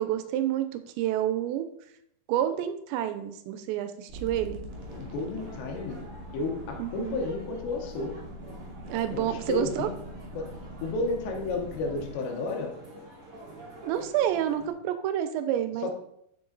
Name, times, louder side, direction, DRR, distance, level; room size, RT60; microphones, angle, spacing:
voice 1, 0.0-1.7 2.3-4.6 6.8-7.2 8.9-9.9 13.8-15.9, right 11 dB, 85° right, 10 dB, 2.9 m, -29 dB
sound 1, 4.1-12.1, equal, 60° right, 2.4 m, -43 dB
sound 2, 4.7-14.7, right 1 dB, 45° right, 2.0 m, -48 dB
voice 2, 4.9-6.1 6.3-8.2 9.1-10.0 10.3-10.5 10.8-12.8 15.8-15.9, left 3 dB, 75° left, 3 dB, 3.1 m, -32 dB
6.9 x 6.8 x 3.9 m, 0.75 s
omnidirectional pair, 5.2 m